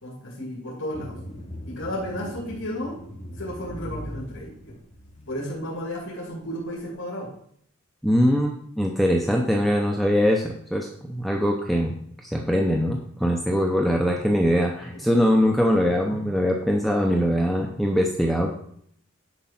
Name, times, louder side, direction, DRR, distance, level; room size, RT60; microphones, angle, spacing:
voice 1, 0.0-1.2 1.6-3.0 3.4-4.8 5.3-7.3 16.0-16.2, equal, 65° left, -4 dB, 2.5 m, -33 dB
sound 1, 0.9-5.5, left 1 dB, 30° left, 2.4 m, -39 dB
voice 2, 8.0-11.9 12.2-18.5, equal, ahead, 0 dB, 0.7 m, -22 dB
10.5 x 4.7 x 5.8 m, 0.67 s
head